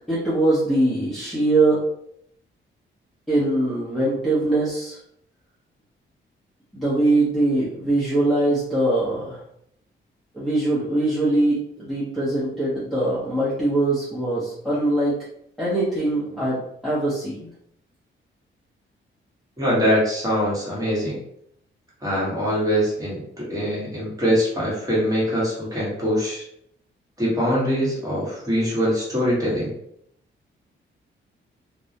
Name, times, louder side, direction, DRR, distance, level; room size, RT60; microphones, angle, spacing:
voice 1, 0.1-1.8 3.3-5.0 6.7-9.4 10.3-15.2 15.6-17.5, right 2 dB, ahead, -11 dB, 0.7 m, -22 dB
voice 2, 19.6-21.2 22.0-26.4 27.2-29.7, equal, 15° right, -6 dB, 1.1 m, -23 dB
2.2 x 2.0 x 2.7 m, 0.72 s
cardioid pair, 125°, 20 cm